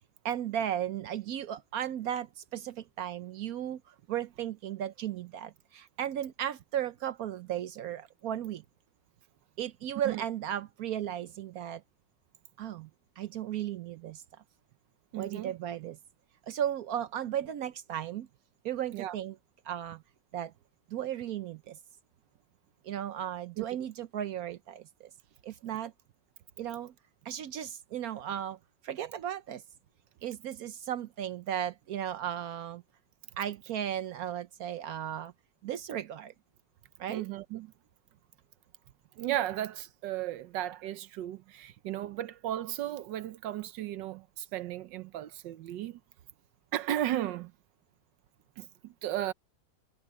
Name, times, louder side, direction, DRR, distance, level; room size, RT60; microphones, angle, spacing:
voice 1, 0.2-8.6 9.6-11.8 12.6-12.9 13.2-14.2 15.2-16.0 16.5-18.3 18.6-19.4 19.6-20.0 20.3-20.5 20.9-21.8 22.8-25.1 25.4-25.9 26.6-26.9 27.2-28.6 28.8-29.6 30.2-32.8 33.4-35.3 35.6-36.3 37.0-37.3, right 10 dB, 65° right, 1.0 m, -35 dB
voice 2, 15.1-15.5 18.9-19.1 23.6-23.7 37.1-37.7 39.2-46.0 46.7-47.5 48.6-49.3, right 13 dB, 80° right, 1.4 m, -35 dB
omnidirectional pair, 1.9 m